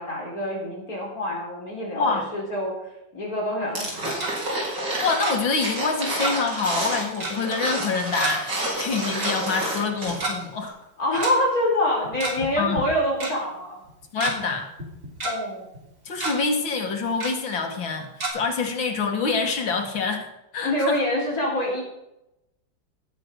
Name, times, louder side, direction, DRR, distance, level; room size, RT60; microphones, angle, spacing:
voice 1, 0.0-2.8 3.1-4.3 11.0-13.8 15.2-15.7 20.6-21.8, left 1 dB, 50° left, -3 dB, 4.6 m, -26 dB
voice 2, 1.9-2.3 5.0-10.7 12.6-12.8 14.1-14.7 16.1-21.0, left 4 dB, 80° left, 3 dB, 2.8 m, -26 dB
sound 1, 3.7-10.4 10.7-10.8, right 1 dB, 70° right, 4.2 m, -29 dB
Tick-tock, 3.9-4.3 5.2-5.3 6.2-6.6 6.8-6.9 7.2-7.4 8.2-8.3 9.2-9.3 10.1-10.3 11.2-11.3 12.0-12.5 12.8-12.9 13.2-13.3 13.9-14.3 14.8-15.3 15.7-15.9 16.2-16.3 17.2-17.3 18.2-18.3, right 2 dB, 40° right, 3.6 m, -29 dB
17.0 x 6.8 x 6.5 m, 0.88 s
omnidirectional pair, 2.1 m